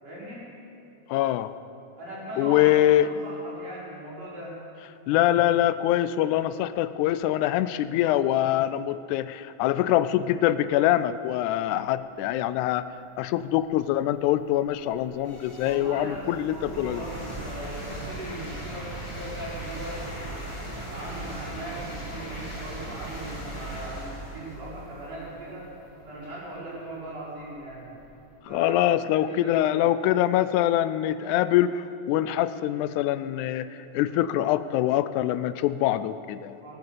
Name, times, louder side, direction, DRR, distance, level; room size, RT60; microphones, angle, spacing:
voice 1, 0.0-0.5 2.0-4.6 15.6-20.5 20.9-25.7 26.1-28.0 28.5-29.9 36.6-36.8, right 1 dB, 55° right, -9 dB, 6.1 m, -39 dB
voice 2, 1.1-1.5 2.4-3.1 5.1-12.9 13.2-17.0 28.5-33.7 33.9-36.6, left 13 dB, 85° left, 13 dB, 2.0 m, -24 dB
sound 1, 12.9-13.0 13.6-28.3, right 1 dB, 15° left, 1.5 m, -39 dB
18.5 x 9.5 x 6.7 m, 2.6 s
omnidirectional pair, 3.4 m